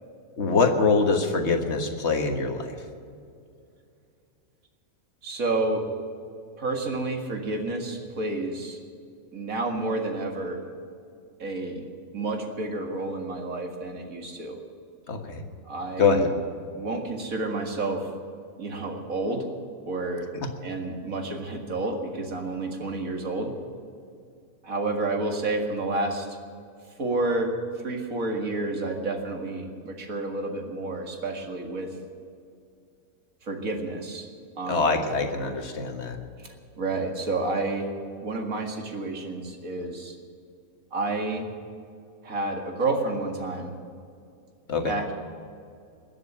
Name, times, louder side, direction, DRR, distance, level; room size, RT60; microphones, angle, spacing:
voice 1, 0.4-2.7 15.1-15.4 16.0-16.3 34.7-36.2 44.7-44.9, left 4 dB, 50° left, 4 dB, 1.8 m, -24 dB
voice 2, 5.2-5.9 6.6-8.8 9.3-10.6 11.4-11.9 12.1-14.6 15.6-16.4 16.7-18.1 18.6-19.5 19.9-20.3 20.6-23.5 24.6-26.3 27.0-27.6 27.8-31.9 33.4-34.3 34.6-34.9 36.4-37.9 38.2-40.2 40.9-41.5 42.2-43.7 44.8-45.1, right 2 dB, 70° right, 3 dB, 2.4 m, -30 dB
21.0 x 7.6 x 8.8 m, 2.4 s
omnidirectional pair, 1.5 m